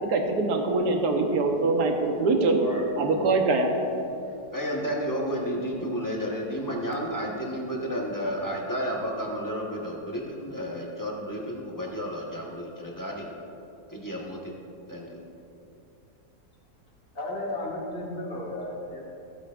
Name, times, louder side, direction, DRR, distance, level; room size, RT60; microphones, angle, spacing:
voice 1, 0.0-2.6 3.0-3.7, right 3 dB, 75° right, 3 dB, 1.5 m, -23 dB
voice 2, 4.5-13.3 13.9-14.5 14.9-15.1, equal, 15° left, -2 dB, 1.1 m, -32 dB
voice 3, 17.1-19.0, left 1 dB, 35° left, -4 dB, 2.1 m, -33 dB
15.0 x 8.9 x 2.5 m, 2.8 s
omnidirectional pair, 1.8 m